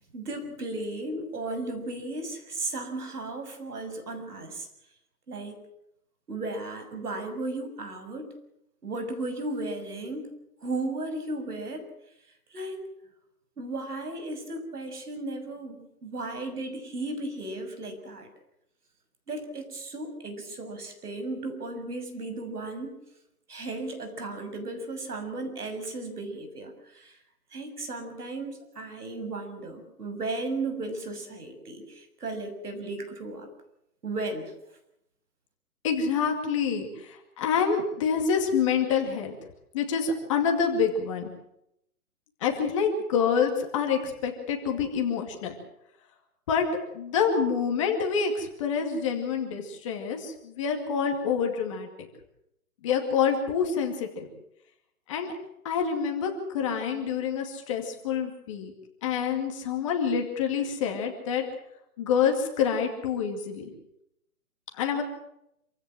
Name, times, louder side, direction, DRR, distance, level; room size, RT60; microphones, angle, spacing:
voice 1, 0.1-4.7 5.3-5.6 6.3-8.3 8.8-10.3 10.6-11.9 12.5-12.8 13.6-15.8 16.0-18.3 19.3-23.0 23.5-27.2 27.5-33.5 34.0-34.5, right 2 dB, 75° right, 7 dB, 6.6 m, -35 dB
voice 2, 35.8-39.4 39.7-41.3 42.4-45.5 46.5-46.7 46.9-52.1 52.8-54.3 55.1-55.3 55.6-58.7 59.0-61.4 62.0-63.7 64.8-65.0, left 6 dB, 20° left, 3 dB, 2.3 m, -27 dB
27.0 x 16.0 x 7.6 m, 0.80 s
hypercardioid pair, 170°, 46 cm